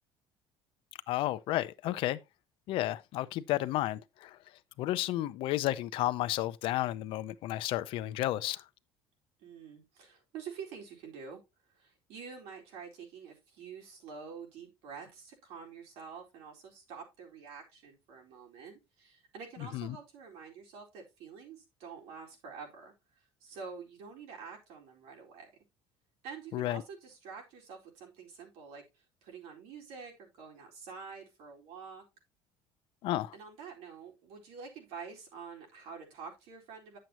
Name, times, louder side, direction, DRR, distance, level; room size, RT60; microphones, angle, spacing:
voice 1, 1.1-2.2 2.7-4.4 4.8-8.6 19.7-20.0 26.5-26.8 33.0-33.3, left 15 dB, 55° left, 0.6 m, -32 dB
voice 2, 9.4-11.4 11.7-22.9 23.4-25.5 26.2-28.8 29.2-32.0 33.3-37.0, right 6 dB, 70° right, 4.2 m, -47 dB
10.5 x 7.7 x 2.9 m
cardioid pair, 170°, 11 cm